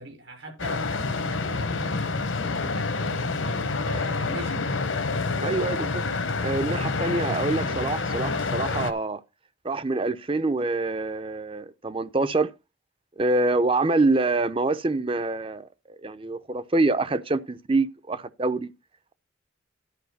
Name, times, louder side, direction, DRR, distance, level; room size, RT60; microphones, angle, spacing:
voice 1, 0.0-4.9, equal, 75° right, 5.9 m, -40 dB
sound 1, 0.6-8.9, left 3 dB, 75° left, 1.1 m, -28 dB
voice 2, 5.4-6.0 6.4-9.2 9.6-12.5 13.2-15.7 16.0-18.7, right 2 dB, 25° right, 0.6 m, -25 dB
11.0 x 4.9 x 6.6 m
head